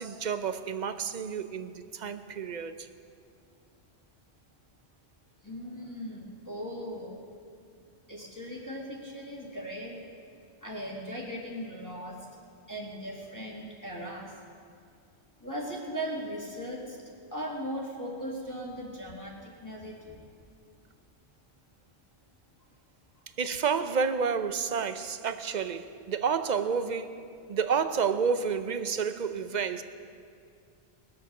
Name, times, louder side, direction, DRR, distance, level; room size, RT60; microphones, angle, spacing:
voice 1, 0.0-2.9 23.4-27.2 27.5-29.8, right 6 dB, 50° right, 0.7 m, -30 dB
voice 2, 5.4-7.2 8.1-10.0 10.6-12.3 12.7-14.3 15.4-17.0 17.3-20.2, equal, 15° left, 1.8 m, -38 dB
20.0 x 8.1 x 6.5 m
omnidirectional pair, 1.1 m